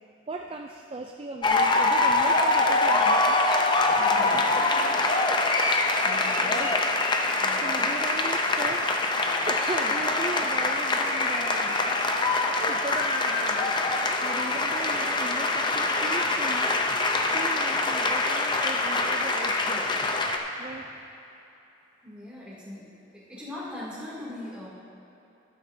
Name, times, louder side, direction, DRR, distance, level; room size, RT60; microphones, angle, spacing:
voice 1, 0.3-3.4 6.4-6.7 7.2-9.1 9.4-11.8 12.5-16.8 17.3-19.9 20.6-20.8, right 3 dB, 30° right, 3 dB, 0.4 m, -38 dB
Applause huge thunderous, 1.4-20.4, left 2 dB, 25° left, 0.6 m, -24 dB
voice 2, 4.0-5.1 6.0-6.6 7.4-7.8 20.6-21.0 22.0-24.7, left 1 dB, 5° right, -8 dB, 2.5 m, -42 dB
12.5 x 12.0 x 2.7 m, 2.9 s
head